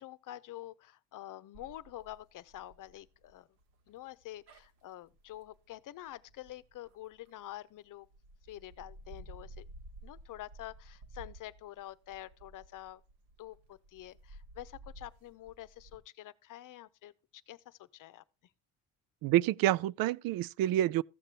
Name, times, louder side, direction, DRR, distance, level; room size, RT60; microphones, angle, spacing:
voice 1, 0.0-3.5 3.9-8.1 8.5-9.7 10.0-13.0 13.4-18.2, left 14 dB, 55° left, 0.8 m, -47 dB
sound 1, 1.5-7.5 8.0-16.0, right 1 dB, 80° right, 2.3 m, -54 dB
voice 2, 19.2-21.0, right 13 dB, 65° right, 0.5 m, -28 dB
14.5 x 6.7 x 4.2 m
cardioid pair, 100°, 38 cm